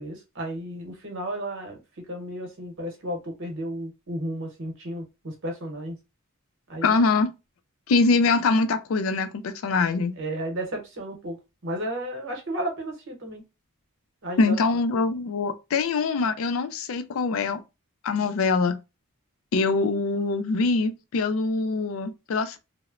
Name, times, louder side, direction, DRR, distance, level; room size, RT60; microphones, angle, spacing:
voice 1, 0.0-6.0 6.7-7.0 10.2-11.4 11.6-13.4 14.2-14.6, right 1 dB, 60° right, 0.9 m, -33 dB
voice 2, 6.8-7.3 7.9-10.1 14.4-17.6 18.0-18.8 19.5-22.6, left 4 dB, 65° left, 0.4 m, -23 dB
2.9 x 2.1 x 2.3 m
head